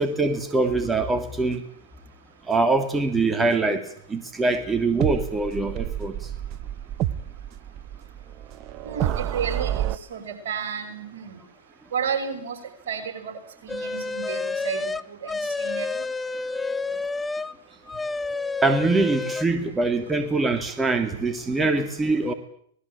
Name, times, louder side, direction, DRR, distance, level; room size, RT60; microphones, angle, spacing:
voice 1, 0.0-1.6 2.5-6.3 18.6-22.3, right 3 dB, 15° right, 7 dB, 3.2 m, -23 dB
sound 1, 5.0-10.0, right 12 dB, 40° right, 1.2 m, -29 dB
voice 2, 8.8-11.4 11.9-12.6 12.9-13.3 13.6-16.0, right 7 dB, 70° right, 7 dB, 6.0 m, -32 dB
sound 2, 13.7-17.5 17.9-19.4, left 3 dB, 10° left, 1.1 m, -29 dB
26.5 x 19.5 x 9.0 m, 0.64 s
hypercardioid pair, 105°, 0 cm